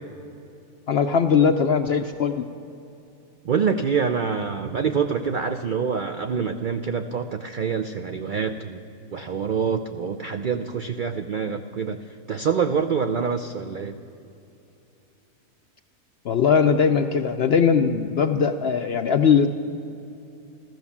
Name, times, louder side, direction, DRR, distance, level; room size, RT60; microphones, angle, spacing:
voice 1, 0.9-2.4 16.3-19.5, left 6 dB, 65° left, 8 dB, 0.6 m, -20 dB
voice 2, 3.4-8.8 9.1-12.0 12.3-14.0, right 6 dB, 75° right, 7 dB, 0.4 m, -26 dB
15.0 x 13.5 x 7.1 m, 2.8 s
omnidirectional pair, 1.6 m